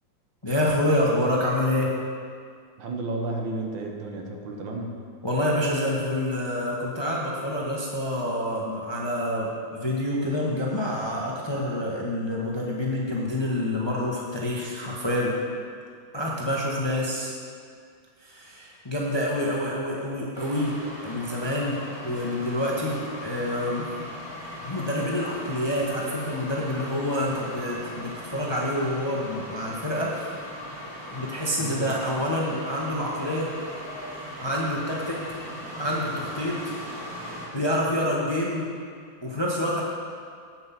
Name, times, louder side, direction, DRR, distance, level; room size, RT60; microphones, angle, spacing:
voice 1, 0.4-1.9 5.2-15.3 16.1-17.3 18.2-20.8 21.0-21.8 22.0-23.9 24.6-30.3 31.1-33.5 34.2-35.2 35.8-36.7 37.5-38.7 39.2-39.8, left 1 dB, 20° left, -4 dB, 0.9 m, -27 dB
voice 2, 2.8-4.9 31.6-31.9, right 2 dB, 75° right, 2 dB, 1.8 m, -32 dB
sound 1, 20.3-37.5, equal, 45° right, 3.2 m, -39 dB
9.0 x 7.7 x 5.8 m, 2.2 s
omnidirectional pair, 2.1 m